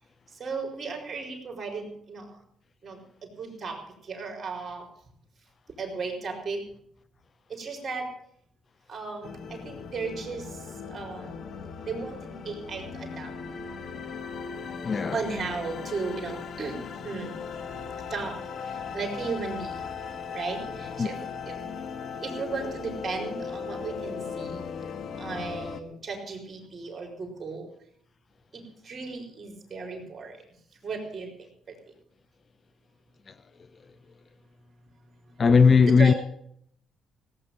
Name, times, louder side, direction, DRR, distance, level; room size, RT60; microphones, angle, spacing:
voice 1, 0.4-2.3 2.8-3.0 3.4-3.8 4.1-4.8 5.8-6.6 7.6-8.1 8.9-10.4 10.9-11.3 11.8-13.3 15.1-16.7 17.0-17.3 18.1-18.3 18.9-19.7 20.3-21.2 22.2-24.6 25.2-27.7 28.5-30.4 30.8-31.3 35.4-35.5 35.8-36.1, right 4 dB, 35° right, 4.5 m, -35 dB
sound 1, 9.2-25.8, left 6 dB, 60° left, 1.2 m, -38 dB
voice 2, 14.8-15.2 21.0-21.1 35.4-36.1, left 5 dB, 40° left, 0.5 m, -18 dB
17.0 x 9.0 x 7.1 m
cardioid pair, 90°, 0 cm